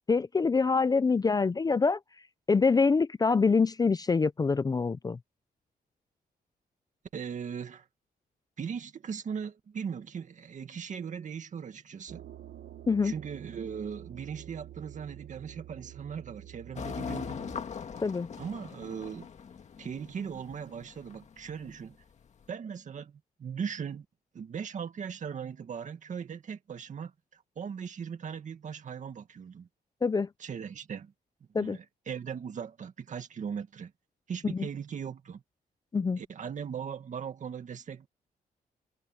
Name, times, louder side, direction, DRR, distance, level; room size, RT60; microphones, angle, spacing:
voice 1, 0.1-2.0 2.5-5.2 12.9-13.1 18.0-18.3 30.0-30.3 31.5-31.8 34.5-34.7 35.9-36.2, left 4 dB, 25° left, 0.5 m, -25 dB
voice 2, 7.1-7.9 8.6-12.3 13.0-17.4 18.4-19.3 19.8-22.0 22.5-24.1 24.3-29.7 30.4-31.1 31.6-33.9 34.3-35.4 36.2-38.1, right 7 dB, 50° right, 2.0 m, -39 dB
sound 1, 12.1-17.6, right 12 dB, 85° right, 1.3 m, -48 dB
sound 2, 16.8-22.4, left 6 dB, 45° left, 1.9 m, -41 dB
cardioid pair, 130°, 16 cm